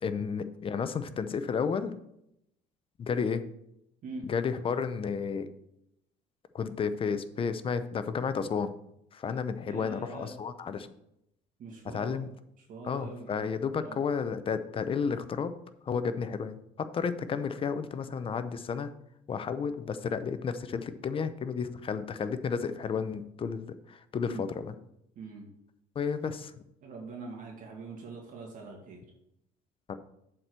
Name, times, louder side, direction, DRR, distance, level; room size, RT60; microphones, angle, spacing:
voice 1, 0.0-1.9 3.0-3.4 4.3-5.5 6.5-8.7 9.1-10.9 11.9-12.3 12.8-15.5 15.9-18.9 19.3-24.7 26.0-26.5 29.9-30.0, left 6 dB, 35° left, 12 dB, 0.6 m, -32 dB
voice 2, 9.7-10.3 11.6-12.2 12.6-13.5 13.7-14.0 24.2-24.4 25.1-25.5 26.8-29.0, right 3 dB, 55° right, 0 dB, 2.0 m, -43 dB
7.7 x 4.5 x 6.7 m, 0.80 s
cardioid pair, 115°, 16 cm